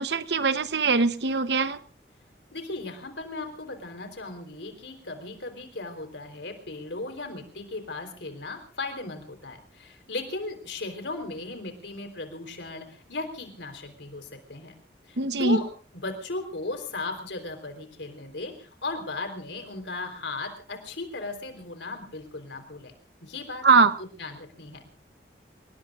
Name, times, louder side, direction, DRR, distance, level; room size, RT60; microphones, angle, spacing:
voice 1, 0.0-1.8 15.2-15.6 23.6-23.9, right 4 dB, 75° right, 12 dB, 1.0 m, -22 dB
voice 2, 2.5-14.7 15.1-15.7 16.0-22.9 23.2-24.8, left 2 dB, 85° left, 6 dB, 3.9 m, -36 dB
28.5 x 18.5 x 2.5 m, 0.40 s
head